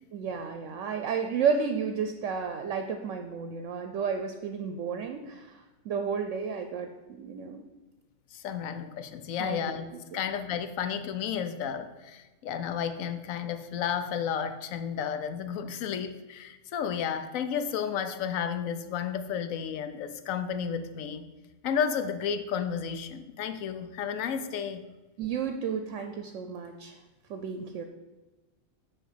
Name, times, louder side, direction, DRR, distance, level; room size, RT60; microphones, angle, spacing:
voice 1, 0.1-5.5 5.8-6.9 7.2-7.6 9.4-9.6 10.1-10.2 25.2-26.9 27.3-27.8, right 6 dB, 70° right, 7 dB, 0.9 m, -32 dB
voice 2, 8.3-21.3 21.6-24.9, left 7 dB, 80° left, 11 dB, 1.0 m, -32 dB
6.5 x 4.6 x 6.6 m, 1.2 s
omnidirectional pair, 1.4 m